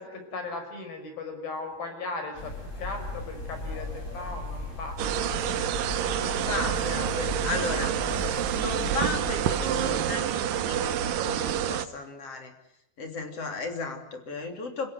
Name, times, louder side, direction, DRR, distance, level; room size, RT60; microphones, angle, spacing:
voice 1, 0.0-5.0, left 3 dB, 70° left, 6 dB, 7.3 m, -37 dB
sound 1, 2.4-10.0, left 2 dB, 20° left, 7.8 m, -36 dB
sound 2, 5.0-11.9, right 10 dB, 70° right, 2.6 m, -28 dB
voice 2, 6.1-7.9 8.5-12.5 13.0-14.9, left 3 dB, 40° left, 5 dB, 3.9 m, -35 dB
29.0 x 17.5 x 9.5 m, 0.80 s
omnidirectional pair, 4.4 m